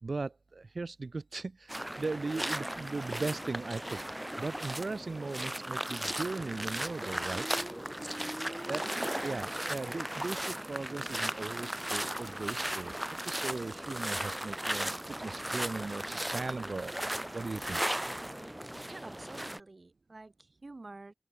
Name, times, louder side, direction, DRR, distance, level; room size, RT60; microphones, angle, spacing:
voice 1, 0.0-7.5 8.7-17.0 17.3-17.8, right 3 dB, 80° right, 2.4 m, -38 dB
sound 1, 1.7-19.6, right 1 dB, 15° right, 1.6 m, -36 dB
voice 2, 7.9-8.5 18.9-21.1, right 2 dB, 60° right, 3.3 m, -50 dB
open air
wide cardioid pair, 65°, 0 cm